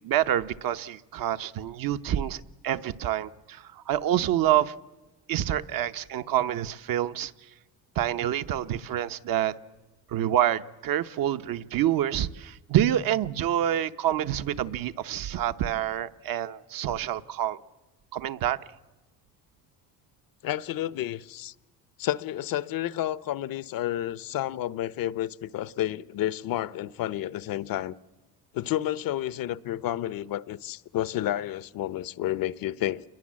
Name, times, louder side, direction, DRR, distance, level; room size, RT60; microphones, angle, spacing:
voice 1, 0.0-4.7 5.3-7.3 8.0-9.5 10.1-17.6 18.1-18.6, right 11 dB, 55° right, 0.9 m, -27 dB
voice 2, 20.4-21.5 22.0-27.9 28.5-33.0, left 13 dB, 60° left, 0.8 m, -30 dB
28.0 x 21.5 x 7.5 m
cardioid pair, 120°, 40 cm